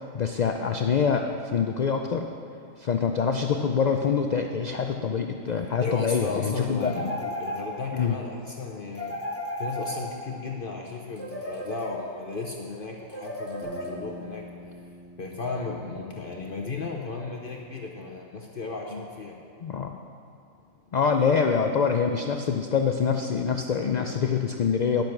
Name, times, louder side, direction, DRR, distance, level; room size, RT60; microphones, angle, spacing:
voice 1, 0.1-2.3 2.8-7.1 7.9-8.2 18.9-19.0 19.6-19.9 20.9-25.0, left 6 dB, 80° left, 5 dB, 0.3 m, -25 dB
voice 2, 5.8-9.2 9.6-14.8 15.2-19.4, left 3 dB, 50° left, 0 dB, 0.9 m, -35 dB
sound 1, 6.8-8.1 8.9-10.5 11.2-12.3 13.1-14.3, left 1 dB, 10° left, 1.2 m, -35 dB
sound 2, 13.6-18.3, equal, 60° right, 3.6 m, -47 dB
10.5 x 7.9 x 5.9 m, 2.4 s
omnidirectional pair, 1.4 m